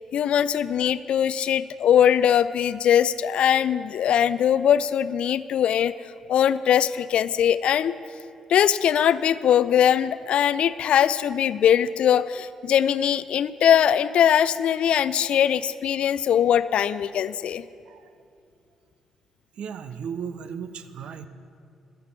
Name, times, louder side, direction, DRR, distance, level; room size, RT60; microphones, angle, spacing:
voice 1, 0.1-5.9 6.3-7.9 8.5-17.6, left 9 dB, 60° left, 16 dB, 0.3 m, -21 dB
voice 2, 19.6-21.3, right 7 dB, 60° right, 12 dB, 0.6 m, -35 dB
13.5 x 5.9 x 8.7 m, 2.4 s
hypercardioid pair, 40°, 2 cm